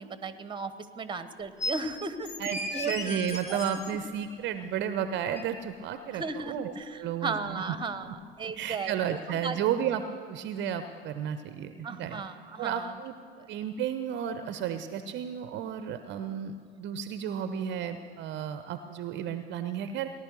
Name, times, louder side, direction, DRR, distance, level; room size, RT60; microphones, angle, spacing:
voice 1, 0.0-2.3 2.7-3.1 3.5-3.6 6.1-9.6 11.8-12.9 13.4-13.5, right 4 dB, 15° right, 12 dB, 1.1 m, -36 dB
sound 1, 1.6-1.8 2.2-3.9 5.4-5.5, left 1 dB, 20° left, 1.6 m, -35 dB
voice 2, 2.4-7.7 8.6-12.2 12.6-13.1 13.5-20.1, right 9 dB, 40° right, 10 dB, 0.7 m, -33 dB
18.5 x 11.0 x 6.7 m, 2.1 s
figure-of-eight pair, 75°, 29 cm